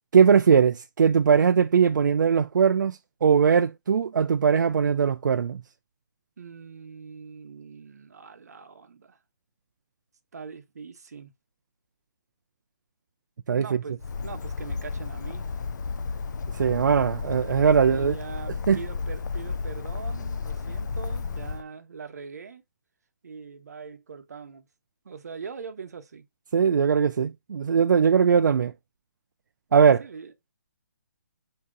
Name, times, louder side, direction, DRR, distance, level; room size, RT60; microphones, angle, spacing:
voice 1, 0.1-5.6 13.5-13.7 16.5-18.2 18.7-18.8 26.5-28.7 29.7-30.0, right 6 dB, 85° right, 0.4 m, -20 dB
voice 2, 6.4-9.2 10.3-11.3 13.6-15.5 17.9-22.6 23.2-24.6 25.0-26.3 30.0-30.3, right 5 dB, 60° right, 0.8 m, -42 dB
Bird, 14.0-21.6, left 4 dB, 75° left, 0.4 m, -33 dB
4.6 x 2.8 x 3.7 m
hypercardioid pair, 175°, 10 cm